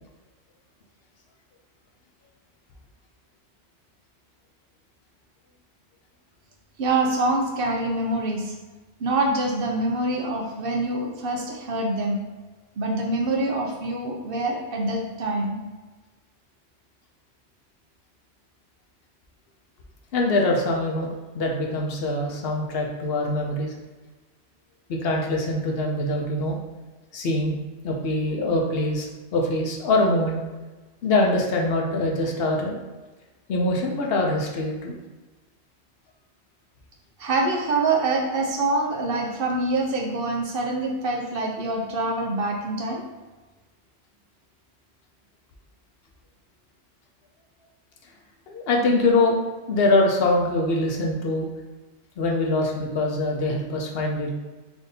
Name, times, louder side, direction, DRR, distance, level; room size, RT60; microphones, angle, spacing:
voice 1, 6.8-8.5 9.0-12.2 12.8-15.6 37.2-43.0, right 2 dB, 60° right, 0 dB, 0.8 m, -25 dB
voice 2, 20.1-23.7 24.9-26.6 27.1-27.6 27.8-29.1 29.3-30.4 31.0-32.8 33.5-34.9 48.5-49.4 49.7-51.5 52.2-54.3, left 2 dB, 65° left, 0 dB, 0.8 m, -23 dB
3.5 x 2.6 x 3.9 m, 1.2 s
omnidirectional pair, 1.1 m